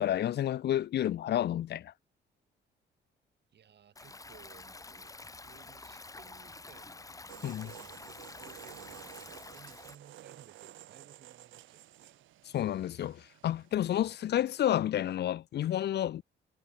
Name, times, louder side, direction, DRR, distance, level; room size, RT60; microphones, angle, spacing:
voice 1, 0.0-1.9 7.4-7.7 12.5-16.2, left 11 dB, 55° left, 0.6 m, -30 dB
voice 2, 3.5-12.3, right 8 dB, 60° right, 6.7 m, -59 dB
Stream, 4.0-10.0, left 3 dB, 15° left, 1.1 m, -48 dB
sound 1, 7.3-14.7, right 14 dB, 80° right, 1.1 m, -53 dB
cardioid pair, 90°, 20 cm